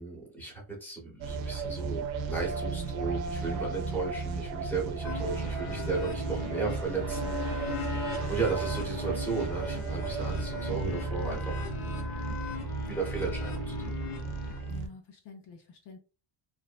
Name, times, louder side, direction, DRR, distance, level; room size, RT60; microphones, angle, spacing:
voice 1, 0.0-12.0 12.8-13.9, right 4 dB, 5° left, -1 dB, 0.8 m, -35 dB
sound 1, 1.2-14.9, right 4 dB, 65° right, 0.5 m, -34 dB
sound 2, 5.0-14.8, left 5 dB, 70° left, 0.9 m, -39 dB
sound 3, 6.5-10.7, right 2 dB, 30° right, 0.7 m, -47 dB
voice 2, 14.7-16.0, left 5 dB, 55° left, 4 dB, 0.5 m, -49 dB
2.6 x 2.1 x 2.3 m, 0.34 s
cardioid pair, 130°, 50 cm